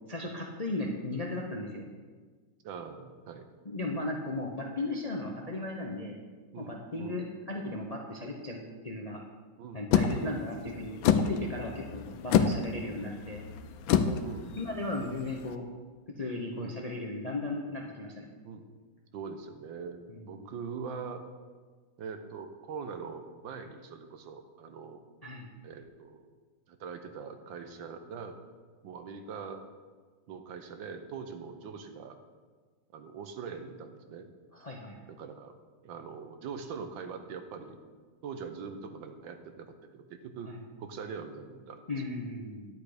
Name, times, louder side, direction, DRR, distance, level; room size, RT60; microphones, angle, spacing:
voice 1, 0.1-1.9 3.6-6.2 6.6-9.2 9.7-13.4 14.0-14.2 14.6-15.6 16.2-18.3 20.1-20.5 25.2-25.5 34.5-35.1 40.4-40.6 41.9-42.7, left 2 dB, 45° left, 0 dB, 0.5 m, -36 dB
voice 2, 2.6-3.4 6.5-7.2 9.6-9.8 10.2-10.4 14.2-14.5 16.6-16.8 18.4-18.6 19.1-21.3 22.0-25.0 25.6-26.3 26.7-28.4 28.8-29.6 30.3-32.2 32.9-34.3 35.1-35.5 35.8-37.8 38.2-40.5 40.8-41.8, right 5 dB, 75° right, 7 dB, 1.6 m, -42 dB
sound 1, 9.9-15.5, left 7 dB, 85° left, 1.4 m, -28 dB
10.5 x 8.3 x 5.0 m, 1.5 s
omnidirectional pair, 2.1 m